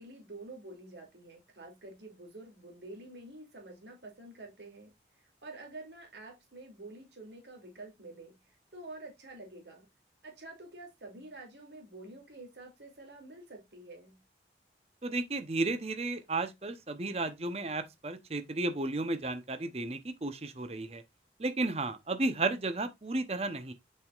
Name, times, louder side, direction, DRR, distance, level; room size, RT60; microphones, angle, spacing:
voice 1, 0.0-9.9 10.2-14.2, right 2 dB, 80° right, 2.7 m, -48 dB
voice 2, 15.0-21.0 21.4-23.7, right 2 dB, 35° right, 0.8 m, -33 dB
7.5 x 5.6 x 2.4 m
head